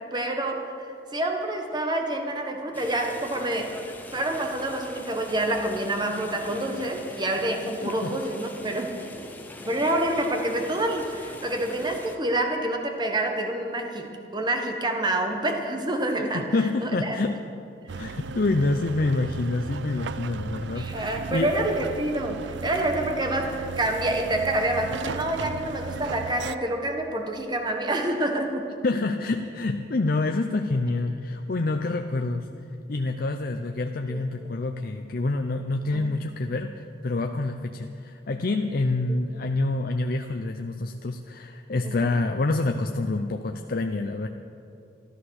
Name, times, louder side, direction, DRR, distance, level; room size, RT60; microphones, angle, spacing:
voice 1, 0.0-3.8 4.1-9.0 9.6-16.5 16.8-17.2 20.7-28.7 34.1-34.3 35.9-36.1 39.1-39.2 41.8-42.1, right 1 dB, 25° right, 3 dB, 1.3 m, -27 dB
sound 1, 2.7-12.2, left 1 dB, 10° left, 1.0 m, -43 dB
voice 2, 7.8-8.1 16.3-17.4 18.0-21.6 28.8-32.5 32.9-44.3, left 2 dB, 50° left, 5 dB, 0.6 m, -27 dB
sound 2, 17.9-26.6, right 5 dB, 70° right, 0.4 m, -36 dB
13.5 x 13.0 x 6.5 m, 2.5 s
head